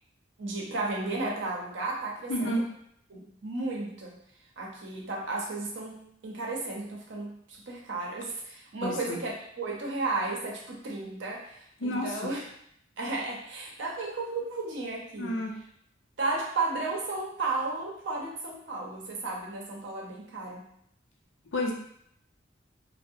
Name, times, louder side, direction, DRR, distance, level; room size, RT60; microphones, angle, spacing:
voice 1, 0.4-2.6 3.1-4.2 4.6-12.5 13.0-15.7 16.2-20.7, right 3 dB, 80° right, -1 dB, 0.6 m, -34 dB
voice 2, 2.3-2.7 8.8-9.2 11.8-12.1 15.2-15.5 21.5-21.7, left 1 dB, 85° left, 0 dB, 0.5 m, -29 dB
2.4 x 2.0 x 2.6 m, 0.71 s
head